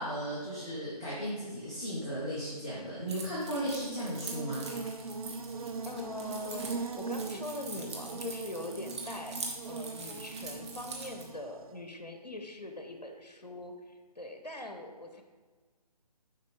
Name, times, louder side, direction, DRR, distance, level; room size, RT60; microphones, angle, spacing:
voice 1, 0.0-4.6, equal, 10° left, -8 dB, 0.4 m, -35 dB
Keys jangling, 3.1-11.2, right 3 dB, 45° right, 1.0 m, -44 dB
Buzz, 3.6-11.8, right 4 dB, 60° right, 0.4 m, -41 dB
voice 2, 5.8-15.2, left 1 dB, 85° left, 5 dB, 0.8 m, -42 dB
6.7 x 4.9 x 3.1 m, 1.4 s
figure-of-eight pair, 145°, 21 cm